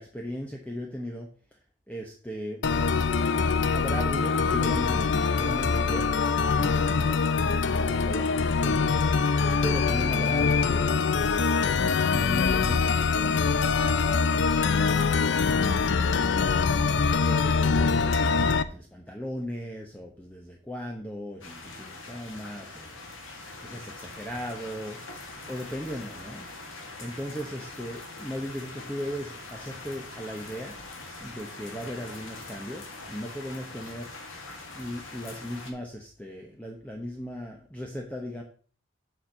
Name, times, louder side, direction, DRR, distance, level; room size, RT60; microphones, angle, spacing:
voice 1, 0.0-1.6 1.9-2.6 3.4-6.1 6.6-8.9 9.6-10.9 12.1-13.6 14.0-16.5 17.3-25.0 25.5-26.5 27.0-30.8 31.2-34.1 34.7-38.4, equal, 5° left, 0 dB, 0.9 m, -37 dB
sound 1, 2.6-18.6, left 5 dB, 60° left, 0.5 m, -24 dB
sound 2, 21.4-35.7, left 2 dB, 75° left, 1.9 m, -43 dB
7.4 x 4.4 x 6.6 m, 0.43 s
head